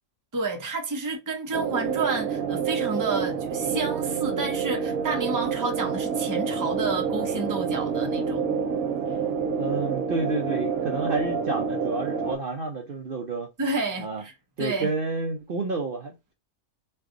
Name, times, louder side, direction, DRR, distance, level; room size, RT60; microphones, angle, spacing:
voice 1, 0.3-8.5 13.6-14.3 14.6-14.9, right 3 dB, 20° right, 0.6 m, -30 dB
sound 1, 1.5-12.4, right 6 dB, 75° right, 1.2 m, -28 dB
voice 2, 9.6-13.5 14.0-14.2 14.6-16.3, right 3 dB, 50° right, 0.7 m, -30 dB
3.3 x 2.3 x 3.6 m
omnidirectional pair, 1.4 m